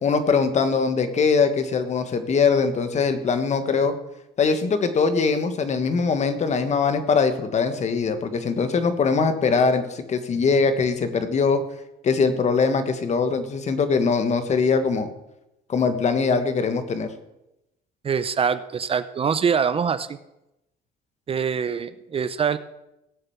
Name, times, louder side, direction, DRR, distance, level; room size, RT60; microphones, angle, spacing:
voice 1, 0.0-3.9 4.4-11.6 12.0-15.1 15.7-17.1, left 5 dB, 45° left, 9 dB, 1.5 m, -22 dB
voice 2, 18.0-20.2 21.3-22.6, right 6 dB, 35° right, 13 dB, 0.6 m, -24 dB
17.5 x 6.8 x 7.2 m, 0.89 s
cardioid pair, 110°, 17 cm